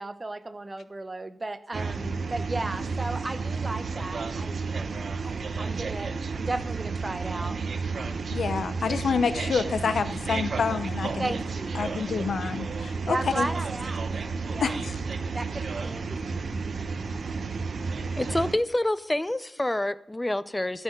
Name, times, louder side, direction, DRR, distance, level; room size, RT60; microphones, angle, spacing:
voice 1, 0.0-7.6 11.2-12.0 13.1-14.0 14.5-14.8 15.3-16.3, right 2 dB, 30° right, 11 dB, 0.9 m, -35 dB
sound 1, 1.7-18.5, right 4 dB, 65° right, 0.9 m, -32 dB
voice 2, 8.3-11.3 11.7-13.5 14.6-15.0, left 5 dB, 80° left, 12 dB, 0.8 m, -28 dB
voice 3, 18.2-20.8, left 1 dB, 15° left, 15 dB, 0.5 m, -27 dB
14.0 x 6.3 x 6.6 m, 0.75 s
wide cardioid pair, 90°, 0 cm